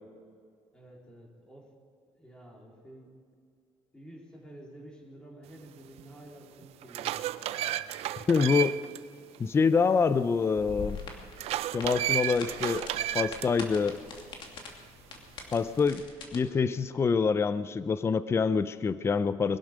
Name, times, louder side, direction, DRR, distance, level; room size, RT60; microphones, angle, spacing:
voice 1, 0.7-1.7 2.1-3.1 3.9-7.9, right 1 dB, 10° left, -2 dB, 3.7 m, -51 dB
sound 1, 6.0-6.1 6.6-9.0 9.3-9.4 11.4-13.5, right 12 dB, 70° right, 0.5 m, -32 dB
voice 2, 8.3-8.8 9.4-11.0 11.7-12.8 13.1-14.0 15.5-16.1 16.3-19.6, left 5 dB, 25° left, 14 dB, 0.5 m, -26 dB
sound 2, 10.6-16.4, left 4 dB, 50° left, 2.6 m, -43 dB
21.5 x 11.5 x 5.0 m, 2.3 s
cardioid pair, 125°, 11 cm